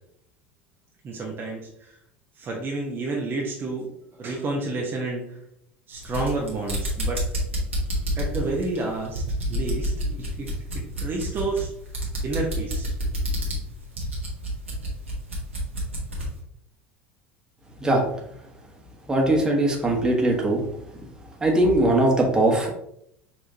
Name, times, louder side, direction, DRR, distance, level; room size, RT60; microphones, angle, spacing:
voice 1, 1.0-1.9 2.4-3.9 4.2-5.4 5.9-7.2 8.2-9.2 9.5-11.7 12.2-12.9, right 3 dB, 35° right, -1 dB, 0.9 m, -30 dB
sound 1, 5.9-16.3, equal, 85° right, 1.2 m, -29 dB
voice 2, 19.1-20.6 21.4-22.7, right 1 dB, 10° right, -1 dB, 1.3 m, -20 dB
5.8 x 2.9 x 2.7 m, 0.74 s
figure-of-eight pair, 75°, 7 cm